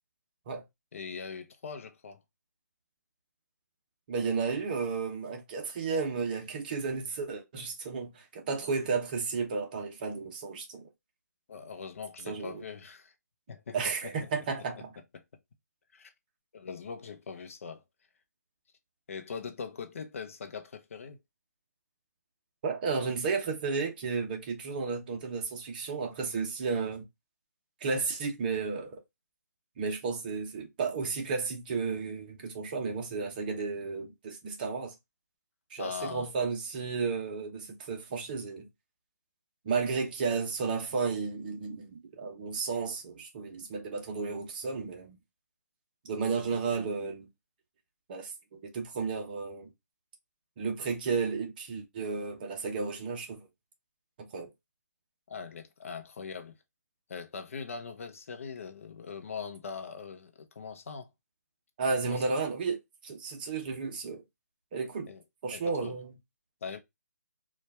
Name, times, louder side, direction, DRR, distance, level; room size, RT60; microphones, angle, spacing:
voice 1, 0.9-2.2 11.5-13.1 13.5-14.3 15.1-15.2 15.9-16.1 16.5-17.8 19.1-21.2 35.8-36.3 55.3-56.5 57.1-61.1 62.1-62.2 65.1-65.2 65.5-65.9 66.6-66.8, left 5 dB, 50° left, 0.8 m, -41 dB
voice 2, 4.1-10.8 12.3-12.6 13.7-14.9 22.6-27.0 27.8-29.0 29.8-34.9 35.7-38.7 39.6-45.2 46.0-47.3 48.1-49.7 50.6-53.5 54.2-54.5 61.8-62.8 63.0-64.2 64.7-65.1 65.4-66.1, right 4 dB, 30° right, 0.9 m, -33 dB
4.3 x 2.4 x 3.4 m
hypercardioid pair, 160°, 9 cm